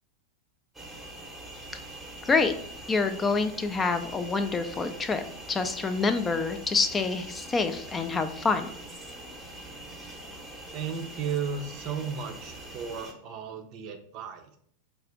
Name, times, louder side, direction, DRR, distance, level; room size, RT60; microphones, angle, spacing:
sound 1, 0.7-13.1, right 1 dB, 5° right, 0.8 m, -43 dB
voice 1, 2.2-2.5 2.9-5.2 5.5-8.7, left 4 dB, 15° left, 9 dB, 0.4 m, -27 dB
voice 2, 10.7-14.6, right 6 dB, 40° right, 5 dB, 0.5 m, -34 dB
4.8 x 2.4 x 3.6 m, 0.63 s
figure-of-eight pair, 90°, 0 cm